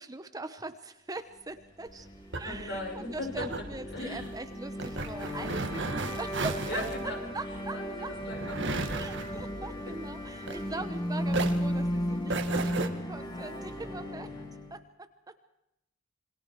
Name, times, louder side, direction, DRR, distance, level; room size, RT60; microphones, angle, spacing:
voice 1, 0.0-2.1 2.4-8.1 9.0-14.3 14.7-15.3, right 2 dB, 20° right, 10 dB, 1.0 m, -41 dB
sound 1, 1.8-14.8, equal, 20° left, 3.0 m, -35 dB
sound 2, 1.9-11.0 11.3-12.9, right 3 dB, 65° right, 1.8 m, -35 dB
voice 2, 2.4-3.3 3.9-4.3 6.7-7.3 7.7-9.0 9.5-9.9 14.2-14.3, left 2 dB, 60° left, 1 dB, 6.3 m, -39 dB
27.5 x 22.0 x 4.7 m, 0.84 s
head